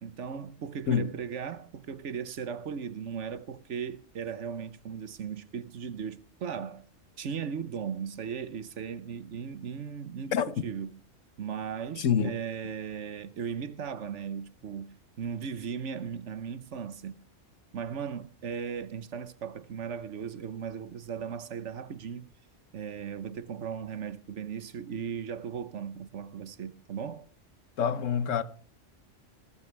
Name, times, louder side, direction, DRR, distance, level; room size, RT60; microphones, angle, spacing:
voice 1, 0.0-6.8 7.2-11.0 11.4-17.2 17.7-22.3 22.7-27.3, right 7 dB, 70° right, 1.3 m, -37 dB
voice 2, 12.0-12.3 27.8-28.4, left 7 dB, 80° left, 1.3 m, -26 dB
20.0 x 12.5 x 3.3 m
omnidirectional pair, 1.3 m